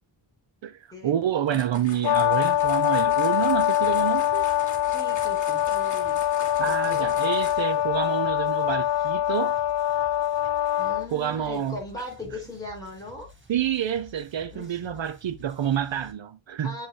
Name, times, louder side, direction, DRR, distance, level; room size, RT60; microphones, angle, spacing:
voice 1, 0.6-4.4 6.6-9.6 11.1-11.8 13.5-16.7, right 10 dB, 65° right, 0.7 m, -28 dB
sound 1, 1.5-7.8, left 2 dB, 35° left, 3.0 m, -42 dB
Brass instrument, 2.0-11.1, left 12 dB, 60° left, 0.6 m, -24 dB
sound 2, 2.1-16.1, left 2 dB, 25° right, 2.2 m, -51 dB
voice 2, 4.9-7.2 10.8-13.3 14.5-14.8 16.6-16.9, left 2 dB, 5° left, 5.3 m, -39 dB
8.5 x 7.8 x 2.2 m
wide cardioid pair, 155°, 48 cm